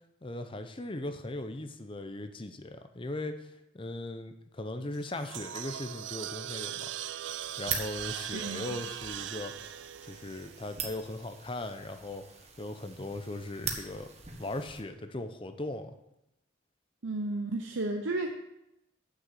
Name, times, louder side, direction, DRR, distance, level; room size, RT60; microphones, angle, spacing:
voice 1, 0.2-6.9 7.6-14.1 14.4-15.9, left 2 dB, 25° left, 8 dB, 0.7 m, -39 dB
sound 1, 4.9-11.2, right 11 dB, 70° right, 0.4 m, -40 dB
sound 2, 7.3-14.8, right 6 dB, 35° right, 1.3 m, -42 dB
voice 2, 8.3-8.8 17.0-18.3, right 2 dB, 90° right, 3 dB, 0.8 m, -33 dB
8.2 x 6.5 x 7.4 m, 0.86 s
head